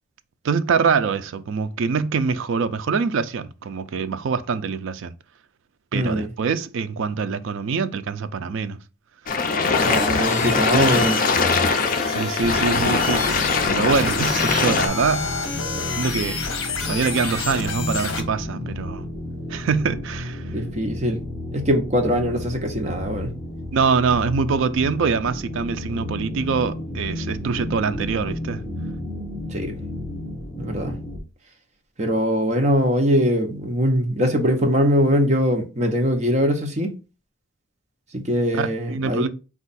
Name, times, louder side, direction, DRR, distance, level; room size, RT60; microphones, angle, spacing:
voice 1, 0.4-5.1 5.9-8.8 12.1-15.3 15.9-16.4 16.8-19.0 19.5-20.5 23.7-28.6 38.5-39.3, right 5 dB, 65° right, 0.4 m, -24 dB
voice 2, 5.9-6.3 9.8-11.2 20.5-21.2 21.5-23.3 29.5-29.8 30.6-30.9 32.0-36.9 38.1-39.3, equal, 30° right, 0.8 m, -21 dB
sound 1, 9.3-14.9, left 4 dB, 40° left, 0.4 m, -22 dB
sound 2, 9.7-18.2, left 4 dB, 65° left, 0.8 m, -29 dB
sound 3, 12.4-31.2, left 1 dB, 15° left, 0.8 m, -32 dB
4.4 x 2.4 x 4.0 m
head